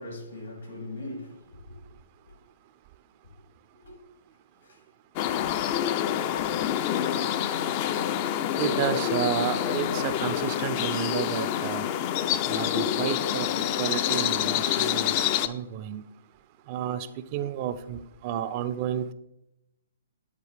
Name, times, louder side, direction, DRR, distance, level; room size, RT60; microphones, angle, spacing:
voice 1, 0.0-1.8 2.3-2.4 3.8-4.0 4.6-4.8 5.8-6.2 10.1-10.2, left 1 dB, 80° left, 2.4 m, -41 dB
sound 1, 5.2-15.5, left 10 dB, 35° left, 0.4 m, -27 dB
voice 2, 8.6-11.8 12.5-16.0 16.7-19.1, right 10 dB, 35° right, 0.4 m, -31 dB
9.5 x 4.0 x 3.3 m
hypercardioid pair, 130°, 0 cm